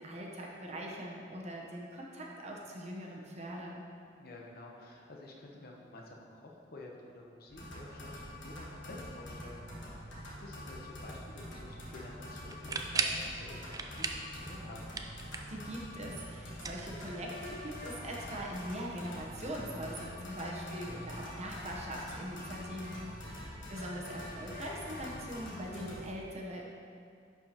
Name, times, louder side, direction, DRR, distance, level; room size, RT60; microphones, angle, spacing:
voice 1, 0.0-3.8 15.5-26.6, equal, 40° right, -2 dB, 0.9 m, -42 dB
voice 2, 4.2-10.0 10.4-14.9 23.3-23.6, left 2 dB, 55° left, -1 dB, 0.9 m, -50 dB
sound 1, 7.5-26.1, left 1 dB, 85° left, 1.3 m, -45 dB
sound 2, 12.5-13.3 13.7-14.3 14.6-15.6 16.5-17.5, right 4 dB, 20° right, 0.3 m, -36 dB
10.5 x 4.7 x 2.9 m, 2.3 s
head